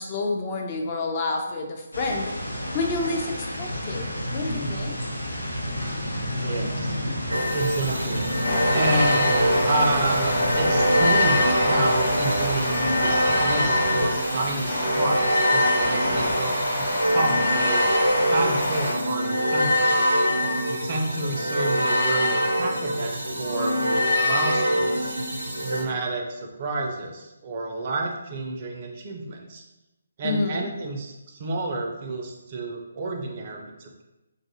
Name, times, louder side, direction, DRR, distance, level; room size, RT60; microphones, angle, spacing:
voice 1, 0.0-2.3 2.7-5.0 30.2-30.7, left 3 dB, 30° left, 2 dB, 0.4 m, -29 dB
sound 1, 1.9-14.1, equal, 85° left, 0.6 m, -30 dB
voice 2, 6.3-7.0 7.5-8.3 8.7-17.9 18.3-20.1 20.7-25.2 25.6-29.6 30.2-34.0, right 2 dB, 35° right, 1 dB, 0.4 m, -29 dB
sound 2, 7.3-25.8, equal, 80° right, 0.6 m, -24 dB
sound 3, 8.4-18.9, equal, 55° left, 1.0 m, -26 dB
2.5 x 2.3 x 2.7 m, 1.0 s
figure-of-eight pair, 145°, 0 cm